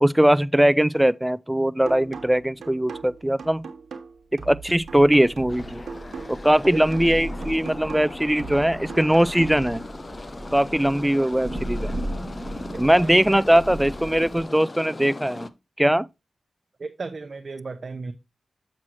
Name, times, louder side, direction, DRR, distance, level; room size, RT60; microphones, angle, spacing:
voice 1, 0.0-3.6 4.4-5.8 6.3-9.8 10.5-11.9 12.8-15.5 15.8-16.1, right 1 dB, 5° right, 0.3 m, -20 dB
sound 1, 1.9-9.9, right 5 dB, 85° right, 1.0 m, -40 dB
Thunder / Rain, 4.7-14.4, right 1 dB, 25° right, 1.8 m, -36 dB
sound 2, 5.5-15.5, left 2 dB, 35° left, 0.6 m, -39 dB
voice 2, 12.7-13.4 16.8-18.1, right 4 dB, 55° right, 0.7 m, -35 dB
7.3 x 6.2 x 2.8 m
cardioid pair, 60°, 0 cm